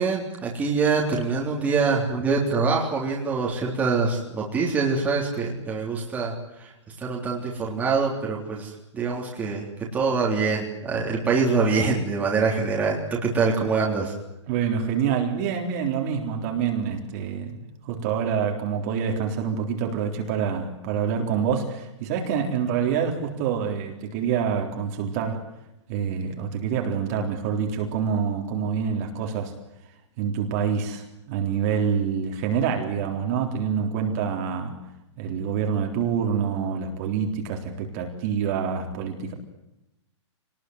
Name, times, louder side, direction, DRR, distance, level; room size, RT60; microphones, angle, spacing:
voice 1, 0.0-6.3 7.0-9.7 9.9-14.1, right 4 dB, 10° right, -2 dB, 3.6 m, -24 dB
voice 2, 14.5-25.5 25.9-29.5 30.2-34.8 35.2-39.3, right 7 dB, 30° right, 2 dB, 3.8 m, -26 dB
26.0 x 20.0 x 9.6 m, 0.89 s
hypercardioid pair, 170°, 16 cm